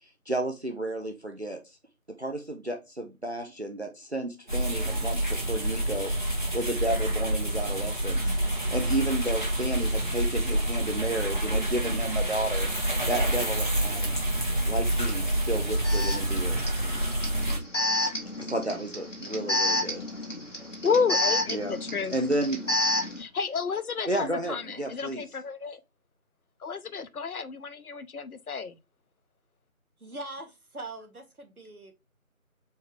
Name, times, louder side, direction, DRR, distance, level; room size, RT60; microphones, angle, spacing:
voice 1, 0.0-1.8 2.1-8.3 8.7-12.7 13.1-14.3 14.7-16.9 17.3-17.4 18.0-20.2 21.5-21.7 22.1-22.6 24.1-25.2, right 1 dB, 50° right, 0.7 m, -32 dB
sound 1, 4.5-17.6, right 1 dB, 35° left, 1.3 m, -27 dB
Alarm, 15.0-15.1 15.8-23.2, left 1 dB, 55° left, 1.4 m, -30 dB
voice 2, 20.8-22.2 23.2-25.8 26.6-28.8, left 5 dB, 85° left, 0.6 m, -31 dB
voice 3, 30.0-31.9, right 2 dB, 85° right, 1.4 m, -41 dB
4.4 x 3.3 x 3.1 m
figure-of-eight pair, 175°, 43 cm